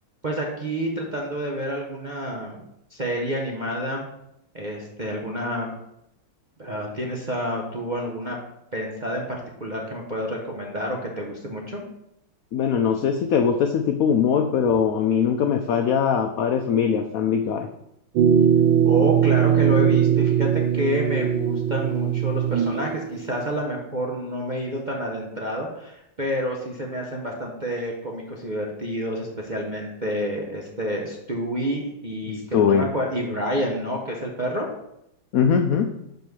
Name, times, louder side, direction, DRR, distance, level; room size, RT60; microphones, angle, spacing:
voice 1, 0.2-2.6 2.9-4.0 4.5-5.7 6.6-8.4 8.7-9.2 9.6-11.8 18.8-34.7, equal, 45° right, -2 dB, 0.6 m, -28 dB
voice 2, 12.5-17.7 32.5-32.9 35.3-35.9, left 7 dB, 90° left, 6 dB, 0.7 m, -21 dB
sound 1, 18.2-23.1, right 9 dB, 80° right, 1.4 m, -20 dB
5.2 x 5.2 x 6.0 m, 0.81 s
omnidirectional pair, 2.1 m